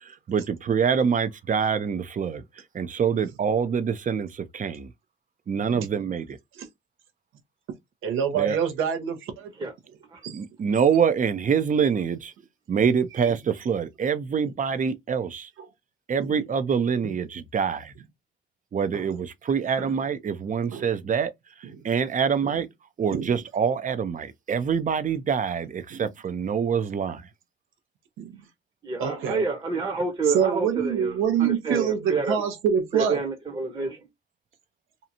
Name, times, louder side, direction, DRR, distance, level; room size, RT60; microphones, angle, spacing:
voice 1, 0.0-2.4 2.7-4.9 5.5-6.4 8.3-8.6 10.3-12.3 12.7-15.5 16.1-17.9 18.7-21.3 21.8-22.7 23.0-27.3, right 6 dB, 40° right, 0.6 m, -25 dB
voice 2, 8.0-9.5 10.2-10.4 13.2-13.3 15.6-15.7 16.2-16.4 17.0-17.2 18.9-19.1 19.8-19.9 20.7-20.9 21.6-21.9 22.4-22.6 23.1-23.3 25.9-26.1 28.2-28.4 29.0-29.5 30.2-33.2, right 8 dB, 75° right, 0.9 m, -27 dB
voice 3, 28.8-31.1 31.4-32.4 32.9-34.0, right 4 dB, 20° right, 1.0 m, -28 dB
2.8 x 2.4 x 2.7 m
supercardioid pair, 55°, 21 cm